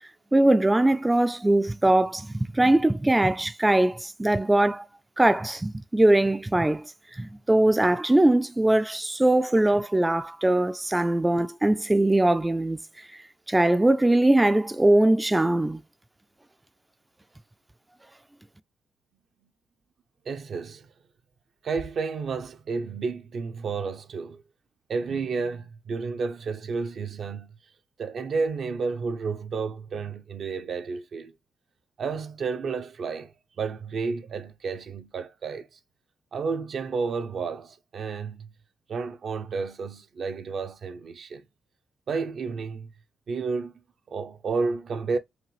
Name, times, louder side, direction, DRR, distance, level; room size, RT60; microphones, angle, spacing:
voice 1, 0.3-4.9 5.2-12.8 13.1-13.2 13.5-15.8, right 1 dB, 15° right, 0.3 m, -21 dB
voice 2, 20.3-20.9 21.6-24.4 24.9-27.5 28.0-31.3 32.0-35.7 36.3-38.5 38.9-41.4 42.1-42.9 43.3-43.7 44.1-45.2, right 4 dB, 60° right, 0.6 m, -31 dB
4.9 x 2.5 x 3.2 m
hypercardioid pair, 50°, 0 cm